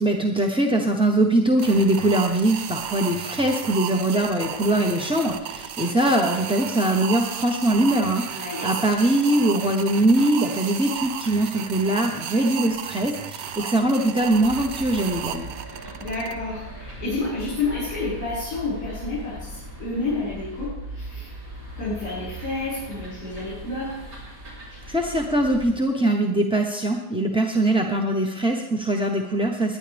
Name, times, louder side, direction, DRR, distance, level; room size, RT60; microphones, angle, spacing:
voice 1, 0.0-15.5 24.9-29.8, right 1 dB, 5° right, 0 dB, 0.6 m, -22 dB
sound 1, 1.6-16.3, right 9 dB, 85° right, 1.4 m, -33 dB
voice 2, 8.3-8.7 16.0-21.3 21.8-23.9 24.7-24.8, left 3 dB, 65° left, -10 dB, 6.3 m, -30 dB
sound 2, 14.3-25.7, right 1 dB, 60° right, 4.6 m, -39 dB
19.5 x 10.5 x 3.5 m, 0.92 s
omnidirectional pair, 1.8 m